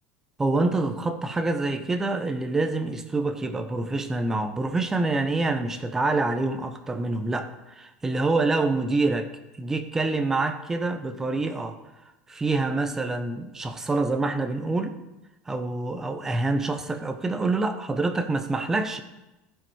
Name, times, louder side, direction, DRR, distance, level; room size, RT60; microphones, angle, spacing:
voice 1, 0.4-9.3 9.6-11.8 12.3-15.0 15.5-19.0, right 3 dB, 10° right, 8 dB, 0.6 m, -26 dB
15.0 x 5.0 x 4.6 m, 0.99 s
cardioid pair, 165°, 5 cm